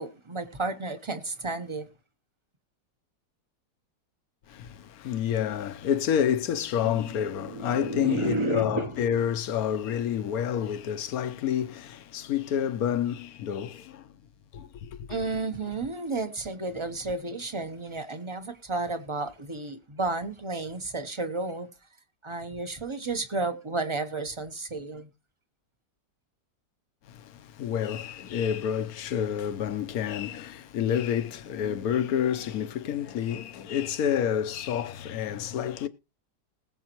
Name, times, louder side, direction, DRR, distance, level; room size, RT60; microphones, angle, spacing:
voice 1, 0.0-1.9 6.8-7.1 7.4-8.9 15.1-21.7 22.2-25.1, right 3 dB, 20° right, 0.8 m, -32 dB
voice 2, 4.5-14.1 14.5-15.1 27.0-35.9, left 9 dB, 65° left, 1.2 m, -29 dB
20.5 x 7.7 x 3.0 m
omnidirectional pair, 1.8 m